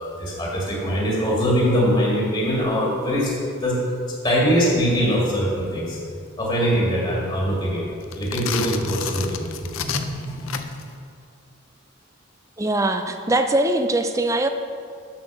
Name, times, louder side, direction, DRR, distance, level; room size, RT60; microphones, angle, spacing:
voice 1, 0.0-3.3 3.6-3.8 4.2-6.0 6.4-10.6, equal, 20° left, -4 dB, 1.9 m, -22 dB
sound 1, 8.0-10.9, left 8 dB, 80° left, 0.5 m, -31 dB
voice 2, 12.6-14.5, right 2 dB, 15° right, 7 dB, 0.4 m, -21 dB
7.3 x 6.4 x 6.4 m, 2.3 s
head